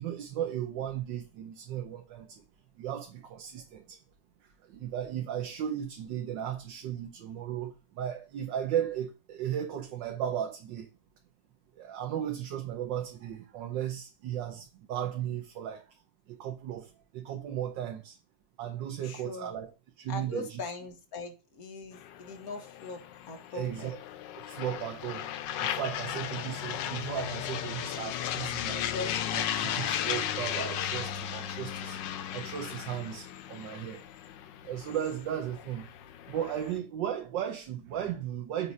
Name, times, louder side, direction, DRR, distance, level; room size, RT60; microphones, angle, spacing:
voice 1, 0.0-2.4 2.8-4.0 4.7-10.9 11.8-15.8 16.3-18.2 18.6-19.7 20.0-20.6 23.5-24.0 24.5-25.3 25.6-28.9 29.3-32.0 32.3-34.0 34.6-35.9 36.3-38.7, right 10 dB, 90° right, 1.5 m, -35 dB
voice 2, 19.0-19.6 20.1-23.9 28.7-29.8, left 2 dB, 55° left, 1.6 m, -41 dB
sound 1, 21.9-36.8, left 10 dB, 85° left, 1.3 m, -36 dB
7.5 x 2.8 x 5.4 m
omnidirectional pair, 1.9 m